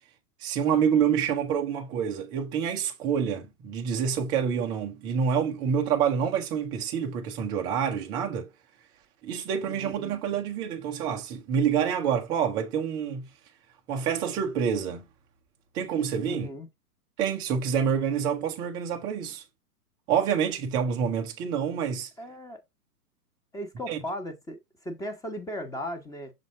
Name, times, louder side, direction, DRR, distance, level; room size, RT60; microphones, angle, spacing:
voice 1, 0.4-8.5 9.2-13.3 13.9-15.1 15.7-16.5 17.2-19.4 20.1-22.1 23.9-24.0, right 7 dB, 10° right, 0.4 m, -27 dB
voice 2, 9.6-10.1 16.3-16.7 22.2-22.6 23.5-26.3, equal, 5° left, 1.0 m, -37 dB
6.6 x 4.0 x 3.9 m
figure-of-eight pair, 115°, 46 cm